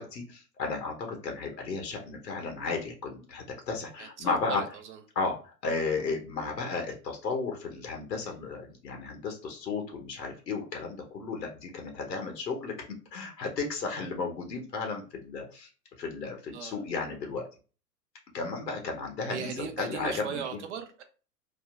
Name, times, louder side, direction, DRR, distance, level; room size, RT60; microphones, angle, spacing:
voice 1, 0.0-4.6 5.1-15.7 16.0-17.5 18.3-20.4, left 4 dB, 85° left, 0.9 m, -34 dB
voice 2, 4.0-5.0 16.5-16.8 19.3-21.0, right 7 dB, 45° right, 0.6 m, -38 dB
3.5 x 2.0 x 2.4 m
hypercardioid pair, 120°, 49 cm